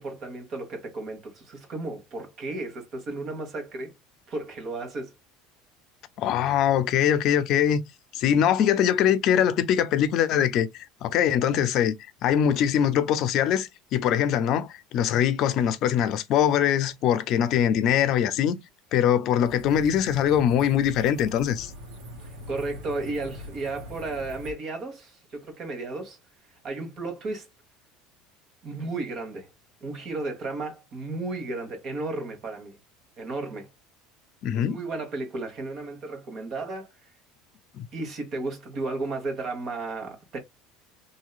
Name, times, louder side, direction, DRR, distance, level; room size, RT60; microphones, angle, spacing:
voice 1, 0.0-3.9 4.3-5.1 22.2-26.2 26.6-27.5 28.6-29.5 29.8-32.8 33.2-33.7 34.5-36.9 37.9-40.4, right 3 dB, 50° right, 1.5 m, -34 dB
voice 2, 6.2-7.8 8.1-11.9 12.2-18.6 18.9-21.7 34.4-34.8 37.7-37.9, left 9 dB, 55° left, 0.5 m, -22 dB
sound 1, 19.4-24.5, left 1 dB, 80° right, 1.3 m, -42 dB
3.0 x 2.7 x 2.3 m
supercardioid pair, 100°, 0 cm